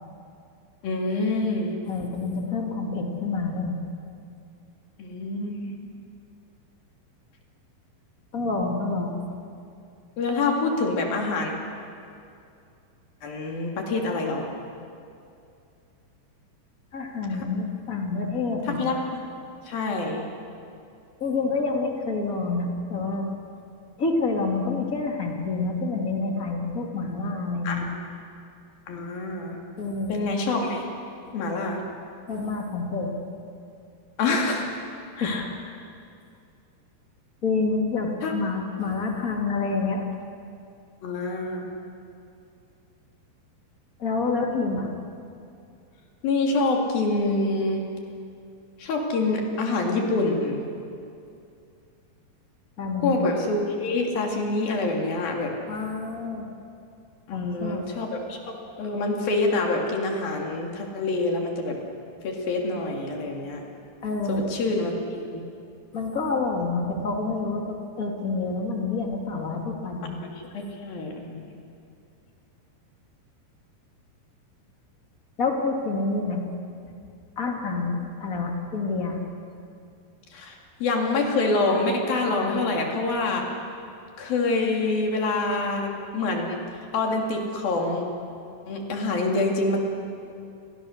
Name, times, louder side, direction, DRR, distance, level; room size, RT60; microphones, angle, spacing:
voice 1, 0.8-1.8 5.0-5.8 10.2-11.5 13.2-14.5 17.3-17.4 18.7-19.0 19.7-20.2 27.6-27.9 28.9-29.6 30.1-30.9 31.3-31.8 34.2-34.7 35.1-35.5 38.2-38.3 41.0-41.7 46.2-47.8 48.8-50.6 53.0-55.5 57.3-61.8 62.2-63.6 64.3-65.4 70.2-71.5 80.3-83.4 84.2-86.6 86.9-88.1 88.7-89.8, left 3 dB, 55° left, 1 dB, 4.1 m, -26 dB
voice 2, 1.8-3.8 8.3-9.2 16.9-18.8 21.2-23.3 24.0-27.8 29.8-30.2 31.5-31.7 32.3-33.1 35.2-35.4 37.4-40.0 44.0-44.9 52.8-53.1 55.7-56.5 57.3-57.8 64.0-64.4 65.9-70.1 75.4-76.4 77.3-79.2, left 3 dB, 30° left, 1 dB, 1.7 m, -28 dB
29.5 x 22.0 x 6.5 m, 2.5 s
omnidirectional pair, 5.1 m